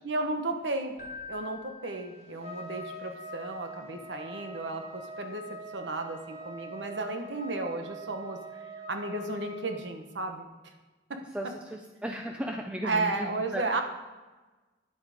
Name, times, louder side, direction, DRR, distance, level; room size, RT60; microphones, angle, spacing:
voice 1, 0.0-1.0 1.3-8.6 8.9-10.5 11.1-11.2 12.8-13.8, right 2 dB, 80° right, 5 dB, 1.2 m, -33 dB
Keyboard (musical), 1.0-2.8, left 4 dB, 40° left, 1.6 m, -46 dB
Trumpet, 2.4-9.7, right 1 dB, 35° right, 1.8 m, -43 dB
voice 2, 11.3-13.6, equal, 5° right, 1 dB, 0.6 m, -36 dB
10.0 x 8.7 x 5.0 m, 1.2 s
head